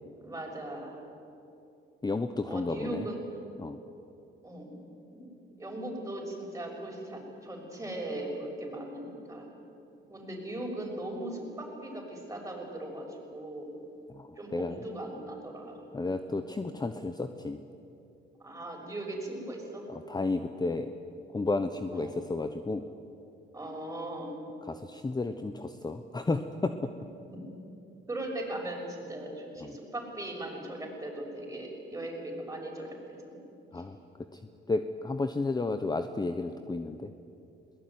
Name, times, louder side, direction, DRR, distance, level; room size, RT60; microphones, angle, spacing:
voice 1, 0.2-1.0 2.4-3.2 4.4-4.8 5.1-5.3 5.6-9.5 10.1-13.7 14.4-15.8 18.4-19.8 21.9-22.2 23.5-24.4 27.3-27.4 28.1-33.0 33.3-33.4 33.7-33.8, right 1 dB, 15° right, 0 dB, 6.4 m, -39 dB
voice 2, 2.0-3.1 3.6-3.8 14.1-14.8 15.9-17.6 19.9-20.9 21.3-22.8 24.7-26.9 29.6-29.7 33.7-34.0 34.3-34.4 34.7-37.1, left 3 dB, 20° left, 8 dB, 1.0 m, -32 dB
22.0 x 18.5 x 9.5 m, 2.8 s
cardioid pair, 90°, 20 cm